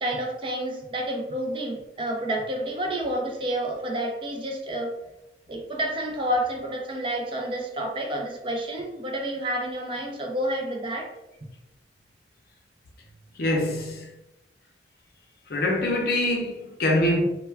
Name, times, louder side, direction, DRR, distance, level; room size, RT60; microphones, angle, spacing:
voice 1, 0.0-4.9 5.5-11.1, right 1 dB, 30° right, 0.4 m, -29 dB
voice 2, 13.3-14.1 15.5-17.2, left 1 dB, 55° left, 0.5 m, -24 dB
2.2 x 2.1 x 3.2 m
head